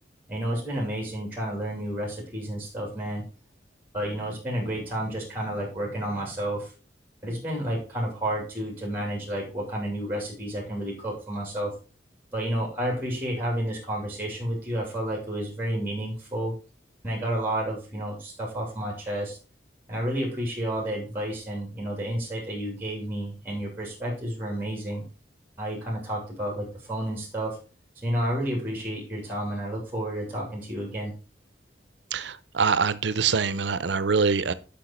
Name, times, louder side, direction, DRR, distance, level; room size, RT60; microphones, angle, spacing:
voice 1, 0.3-3.2 3.9-6.7 7.2-11.7 12.3-16.5 17.0-19.4 19.9-25.0 25.6-27.6 28.0-31.1, right 1 dB, 10° right, 2.8 m, -31 dB
voice 2, 32.1-34.5, right 5 dB, 75° right, 0.7 m, -24 dB
10.5 x 5.8 x 4.3 m
head